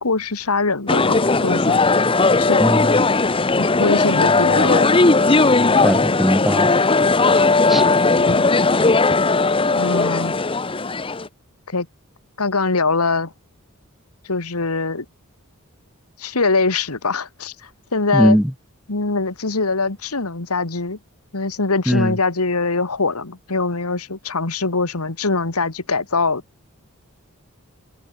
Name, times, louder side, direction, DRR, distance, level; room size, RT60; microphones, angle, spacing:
voice 1, 0.0-1.8 2.4-2.6 3.6-5.0 8.2-8.5 9.7-10.3 11.7-11.9 12.4-13.3 14.3-15.1 16.2-18.4 18.9-21.0 21.3-26.4, left 3 dB, 80° left, 1.9 m, -22 dB
sound 1, 0.9-11.3, left 3 dB, 25° left, 1.0 m, -17 dB
voice 2, 2.6-2.9 5.8-6.7 7.7-7.8 18.1-18.5 21.9-22.1, equal, ahead, 1.2 m, -18 dB
open air
head